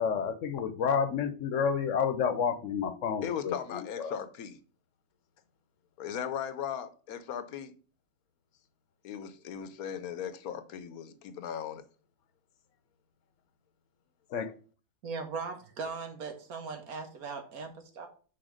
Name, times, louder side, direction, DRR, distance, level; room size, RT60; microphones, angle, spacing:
voice 1, 0.0-4.1 14.3-14.5, left 6 dB, 65° left, 1.1 m, -30 dB
voice 2, 3.2-4.6 6.0-7.7 9.0-11.8, left 8 dB, 85° left, 1.2 m, -37 dB
voice 3, 15.0-18.1, right 5 dB, 90° right, 1.8 m, -39 dB
6.1 x 4.1 x 5.0 m
omnidirectional pair, 1.5 m